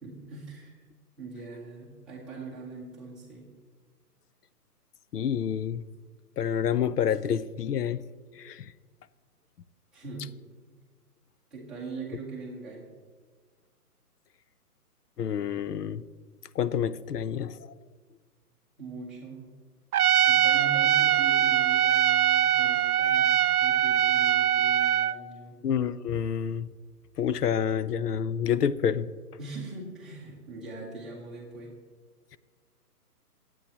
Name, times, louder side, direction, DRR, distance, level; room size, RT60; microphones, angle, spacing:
voice 1, 0.0-0.8 1.2-3.5 9.9-10.3 11.5-12.9 18.8-19.5 20.2-25.6 29.4-31.7, right 3 dB, ahead, 0.8 m, -41 dB
voice 2, 5.1-5.8 6.4-8.0 8.4-8.7 15.2-16.0 16.6-17.6 25.6-26.7 27.2-29.1, left 8 dB, 80° left, 0.7 m, -28 dB
Trumpet, 19.9-25.2, right 11 dB, 70° right, 0.5 m, -22 dB
22.0 x 8.9 x 3.0 m
hypercardioid pair, 160°, 47 cm